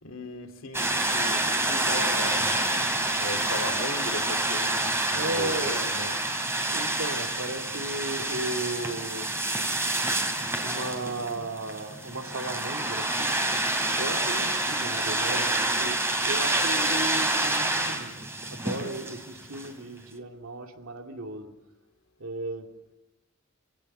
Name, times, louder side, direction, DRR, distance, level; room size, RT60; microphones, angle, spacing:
voice 1, 0.0-2.6 3.2-6.2, left 2 dB, 70° left, 2.3 m, -37 dB
sound 1, 0.7-19.7, right 2 dB, 15° right, 2.9 m, -27 dB
voice 2, 5.1-5.9 6.7-9.3 10.4-13.3 14.0-21.5 22.2-22.7, right 2 dB, 85° right, 2.6 m, -35 dB
25.5 x 17.5 x 6.8 m
head